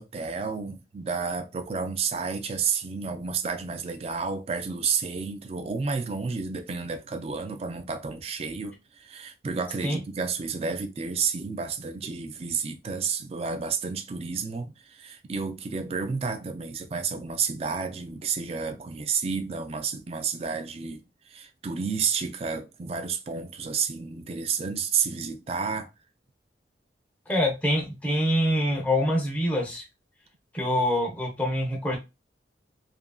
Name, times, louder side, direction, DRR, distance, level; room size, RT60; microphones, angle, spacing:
voice 1, 0.0-21.0 21.3-25.9, right 5 dB, 35° right, 0.4 m, -31 dB
voice 2, 27.3-29.8 30.5-32.0, equal, 10° left, 0.6 m, -25 dB
2.8 x 2.5 x 2.3 m
head